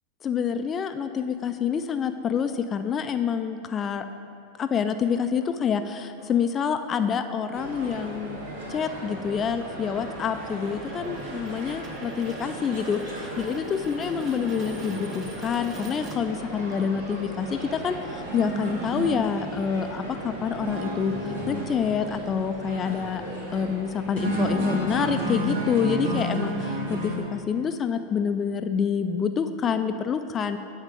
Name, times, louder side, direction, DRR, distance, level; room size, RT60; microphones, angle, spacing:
voice 1, 0.2-4.1 4.6-8.4 8.7-23.2 23.5-30.6, left 7 dB, 25° left, 8 dB, 0.3 m, -27 dB
sound 1, 6.2-16.7, right 1 dB, 30° right, 1.0 m, -47 dB
sound 2, 7.5-27.2, right 1 dB, 75° right, 2.0 m, -33 dB
9.5 x 3.6 x 6.7 m, 2.6 s
supercardioid pair, 125°, 0 cm